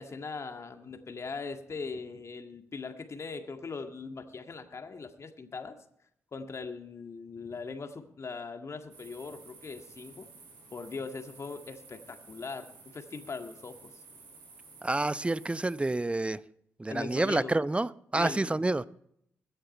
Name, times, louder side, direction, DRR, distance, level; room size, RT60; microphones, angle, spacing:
voice 1, 0.0-5.8 6.3-10.3 10.7-13.9 16.9-17.6 18.2-18.7, left 4 dB, 45° left, 1.9 m, -40 dB
sound 1, 8.9-16.1, right 4 dB, 75° right, 5.2 m, -53 dB
voice 2, 14.8-16.4 16.8-18.8, right 2 dB, 15° right, 0.7 m, -28 dB
22.0 x 7.9 x 4.4 m
hypercardioid pair, 40°, 7 cm